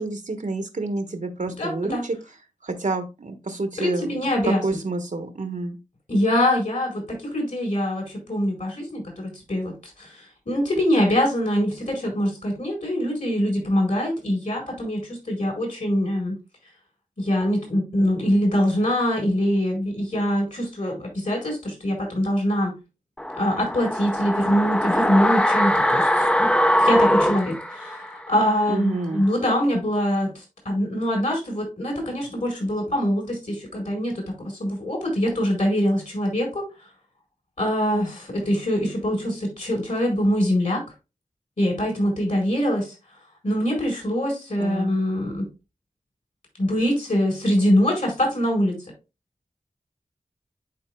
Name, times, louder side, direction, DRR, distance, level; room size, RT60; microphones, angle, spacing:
voice 1, 0.0-2.2 2.6-4.2 4.4-5.8 28.7-29.2 44.6-44.9, right 3 dB, 70° right, 7 dB, 1.2 m, -29 dB
voice 2, 1.6-2.0 3.8-4.8 6.1-16.3 17.2-22.7 23.3-26.5 26.8-36.7 37.6-40.8 41.6-42.9 43.4-45.5 46.6-48.8, equal, 65° left, 0 dB, 4.4 m, -24 dB
sound 1, 23.2-28.3 28.6-28.7, equal, 10° left, 0.6 m, -21 dB
10.5 x 4.5 x 2.2 m, 0.27 s
wide cardioid pair, 45°, 14 cm